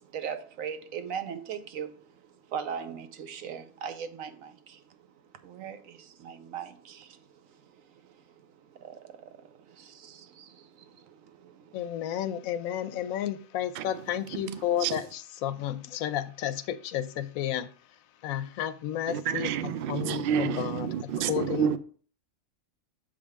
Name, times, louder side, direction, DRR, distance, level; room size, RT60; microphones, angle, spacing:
voice 1, 0.0-5.0 5.4-11.8, right 7 dB, 80° right, 1.1 m, -40 dB
voice 2, 11.7-17.7 18.2-19.5 19.9-20.9 21.3-21.8, left 11 dB, 90° left, 1.0 m, -32 dB
voice 3, 14.3-15.0 19.1-21.8, right 8 dB, 60° right, 0.6 m, -30 dB
6.9 x 5.0 x 3.5 m
omnidirectional pair, 1.4 m